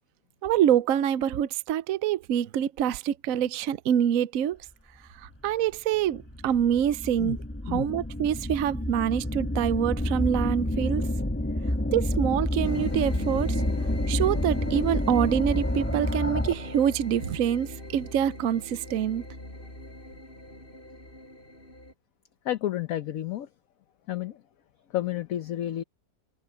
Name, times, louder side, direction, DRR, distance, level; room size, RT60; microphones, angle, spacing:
voice 1, 0.4-4.6 5.2-7.4 7.7-11.1 11.9-13.6 14.1-19.2, right 10 dB, 65° right, 0.8 m, -26 dB
sound 1, 5.4-5.5 6.1-16.8, left 1 dB, 10° left, 1.2 m, -29 dB
sound 2, 12.6-21.9, left 1 dB, 30° left, 7.5 m, -39 dB
voice 2, 22.4-23.5 24.1-24.4 24.9-25.8, left 12 dB, 60° left, 1.1 m, -31 dB
omnidirectional pair, 2.0 m